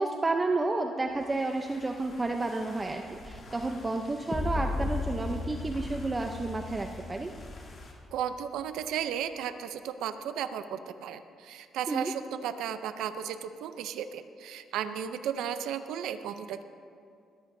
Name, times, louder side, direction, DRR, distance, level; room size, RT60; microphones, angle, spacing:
voice 1, 0.0-7.3 11.9-12.1, right 2 dB, 25° right, 4 dB, 0.7 m, -31 dB
sound 1, 1.0-8.0, left 1 dB, 45° left, 2.6 m, -51 dB
sound 2, 4.3-8.3, left 3 dB, 15° left, 1.2 m, -35 dB
voice 2, 8.1-16.6, right 9 dB, 85° right, 10 dB, 0.5 m, -34 dB
21.0 x 14.5 x 2.7 m, 2.4 s
cardioid pair, 90°, 0 cm